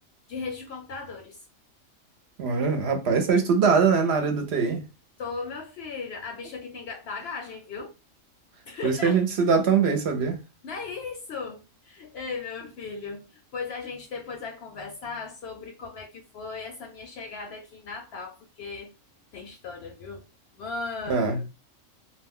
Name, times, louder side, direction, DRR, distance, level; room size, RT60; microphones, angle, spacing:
voice 1, 0.3-1.4 5.2-7.9 8.7-9.2 10.6-18.9 19.3-20.3 20.5-21.4, left 4 dB, 65° left, 0.7 m, -37 dB
voice 2, 2.4-4.8 8.8-10.4 21.1-21.5, right 5 dB, 60° right, 0.9 m, -22 dB
2.3 x 2.2 x 3.5 m
omnidirectional pair, 1.3 m